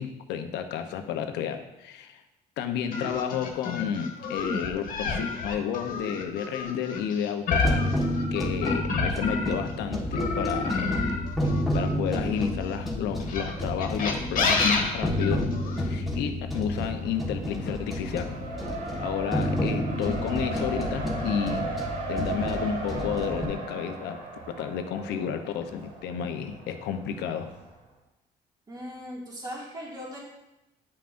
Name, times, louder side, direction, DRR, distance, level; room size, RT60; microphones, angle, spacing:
voice 1, 0.0-2.2 2.6-7.9 8.3-10.9 11.7-15.5 15.8-18.4 19.0-21.7 22.1-24.2 24.5-27.5, left 8 dB, 85° left, 7 dB, 0.8 m, -31 dB
sound 1, 2.9-9.7 10.1-12.5 13.2-15.8, left 4 dB, 55° left, 1.4 m, -29 dB
sound 2, 7.6-23.5, left 1 dB, ahead, 1.4 m, -30 dB
Race car auto racing, 16.6-27.6, right 3 dB, 50° right, 2.2 m, -37 dB
voice 2, 28.7-30.2, equal, 25° right, -4 dB, 2.1 m, -38 dB
9.8 x 5.7 x 2.6 m, 0.94 s
cardioid pair, 110°, 17 cm